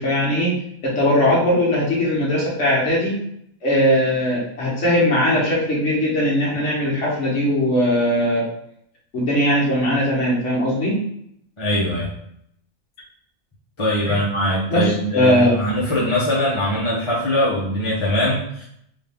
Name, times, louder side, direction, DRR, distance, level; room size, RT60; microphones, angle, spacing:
voice 1, 0.0-3.1 3.6-8.5 9.1-11.0 14.0-14.2 14.7-15.5, equal, 55° left, -5 dB, 1.6 m, -20 dB
voice 2, 11.6-12.1 13.8-18.6, left 1 dB, 25° left, -8 dB, 0.8 m, -21 dB
3.6 x 2.7 x 3.4 m, 0.72 s
omnidirectional pair, 1.4 m